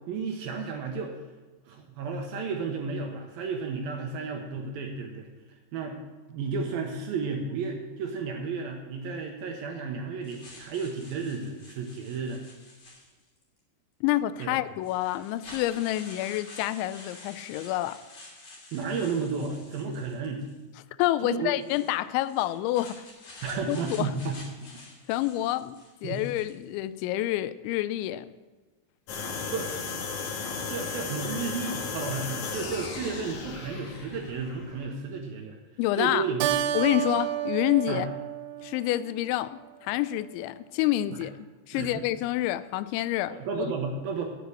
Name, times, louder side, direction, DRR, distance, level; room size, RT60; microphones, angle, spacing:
voice 1, 0.1-1.2 1.7-5.3 5.7-6.0 6.3-12.4 14.4-14.6 18.7-20.4 21.2-21.5 23.4-24.4 26.0-26.2 29.5-29.7 30.7-35.6 36.0-36.6 37.9-38.1 41.7-42.0 43.3-44.3, right 5 dB, 70° right, 2 dB, 2.4 m, -32 dB
sound 1, 10.2-13.4 14.3-14.4 14.8-20.6 21.5-26.7, left 2 dB, 40° left, 3.3 m, -49 dB
voice 2, 14.0-18.0 21.0-23.0 23.7-24.1 25.1-28.3 35.8-36.2 36.7-38.1 38.6-41.3 41.7-43.4, left 15 dB, 85° left, 15 dB, 2.9 m, -28 dB
sound 2, 29.1-34.9, left 4 dB, 60° left, 2.2 m, -35 dB
Keyboard (musical), 36.4-39.3, right 12 dB, 85° right, 3.1 m, -30 dB
9.6 x 8.7 x 7.9 m, 1.3 s
omnidirectional pair, 5.2 m